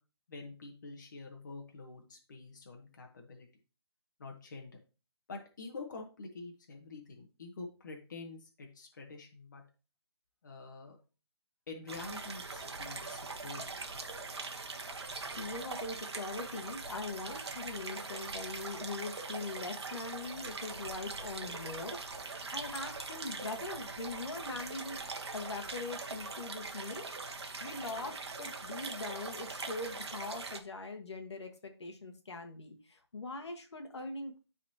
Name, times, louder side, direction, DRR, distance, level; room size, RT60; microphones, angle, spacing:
voice 1, 0.3-3.5 4.2-4.8 5.3-9.6 10.4-11.0 11.7-13.9, left 3 dB, 40° left, 2 dB, 1.3 m, -47 dB
sound 1, 11.9-30.6, right 3 dB, 65° right, 1.3 m, -42 dB
voice 2, 15.1-22.0 22.5-25.0 25.3-27.1 27.6-34.4, left 3 dB, 70° left, 4 dB, 1.5 m, -42 dB
12.0 x 4.1 x 2.9 m, 0.33 s
hypercardioid pair, 175°, 15 cm